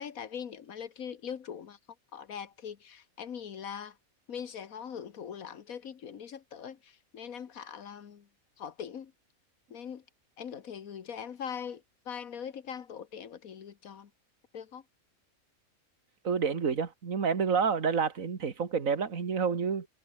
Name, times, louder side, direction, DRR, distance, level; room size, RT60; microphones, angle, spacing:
voice 1, 0.0-1.8 2.1-4.0 4.3-8.3 8.6-9.1 9.7-10.0 10.4-14.1 14.5-14.8, left 7 dB, 80° left, 1.7 m, -41 dB
voice 2, 16.2-19.9, right 6 dB, 70° right, 2.3 m, -29 dB
omnidirectional pair, 1.5 m